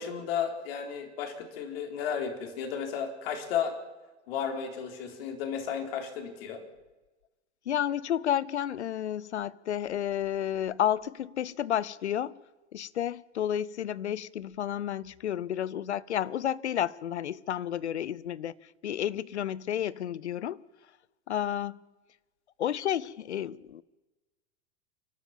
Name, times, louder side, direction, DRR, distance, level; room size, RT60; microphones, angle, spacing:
voice 1, 0.0-3.7 4.3-6.6, left 7 dB, 60° left, 4.1 m, -33 dB
voice 2, 7.7-12.3 12.7-18.5 18.8-20.6 21.3-21.8 22.6-23.8, left 10 dB, 75° left, 0.8 m, -31 dB
29.5 x 12.5 x 7.5 m
figure-of-eight pair, 90°, 34 cm